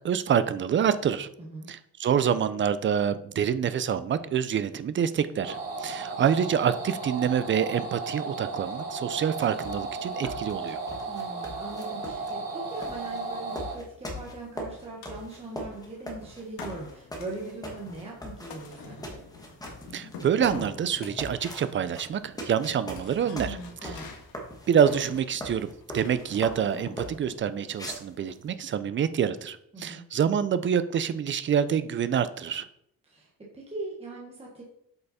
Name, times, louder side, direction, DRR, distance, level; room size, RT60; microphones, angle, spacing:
voice 1, 0.0-1.3 1.7-10.8 19.9-23.9 24.7-32.7, right 8 dB, 35° right, 13 dB, 0.4 m, -27 dB
voice 2, 1.4-1.7 11.1-19.2 23.4-24.1 29.7-30.0 33.0-33.3 33.5-34.6, right 2 dB, 15° right, -2 dB, 1.2 m, -40 dB
sound 1, 5.4-13.7, right 3 dB, 80° right, 2.7 m, -35 dB
sound 2, 9.3-27.3 27.7-28.5, equal, 10° left, 1.3 m, -40 dB
sound 3, 12.9-27.4, left 4 dB, 85° left, 1.5 m, -47 dB
7.9 x 5.5 x 4.1 m, 0.74 s
wide cardioid pair, 180°, 35 cm